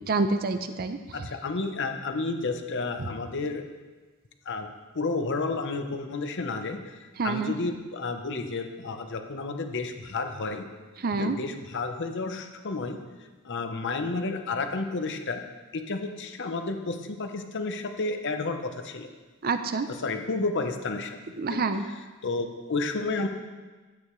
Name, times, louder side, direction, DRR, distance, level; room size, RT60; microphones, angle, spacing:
voice 1, 0.1-1.0 7.2-7.5 11.0-11.4 19.4-19.9 21.4-21.8, right 3 dB, 45° right, 9 dB, 0.5 m, -27 dB
voice 2, 1.1-3.7 4.5-4.7 4.9-10.6 11.2-13.0 13.4-15.4 15.7-19.1 19.9-21.2 21.5-23.3, left 3 dB, 55° left, 6 dB, 0.8 m, -31 dB
11.5 x 8.8 x 3.2 m, 1.3 s
head